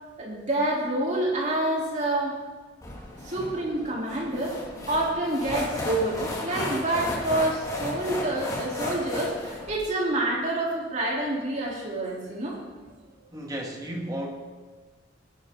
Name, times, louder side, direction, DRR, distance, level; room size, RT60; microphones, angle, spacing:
voice 1, 0.2-2.3 3.2-4.6 4.9-12.6, right 1 dB, 40° right, -4 dB, 3.4 m, -27 dB
sound 1, 2.8-9.8, left 1 dB, 20° left, 2.2 m, -34 dB
voice 2, 13.3-14.3, right 1 dB, 20° right, 0 dB, 1.7 m, -33 dB
18.5 x 11.0 x 3.8 m, 1.4 s
head